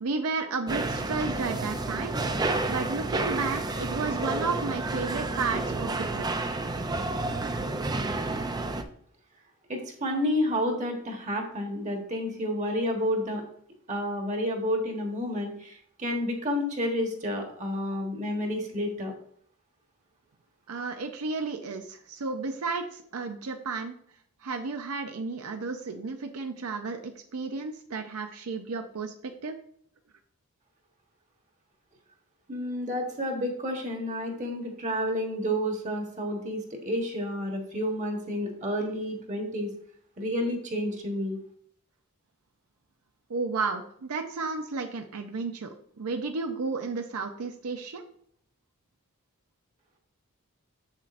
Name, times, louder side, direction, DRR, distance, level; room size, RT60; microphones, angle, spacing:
voice 1, 0.0-2.1 2.7-6.5 20.7-23.9 24.4-29.6 43.3-48.0, right 4 dB, 85° right, 6 dB, 0.6 m, -33 dB
sound 1, 0.7-8.8, right 2 dB, 20° right, 0.4 m, -30 dB
voice 2, 9.7-13.4 13.9-19.1 32.5-39.7 40.2-41.4, equal, 35° right, 2 dB, 1.3 m, -30 dB
7.2 x 7.2 x 2.5 m, 0.64 s
head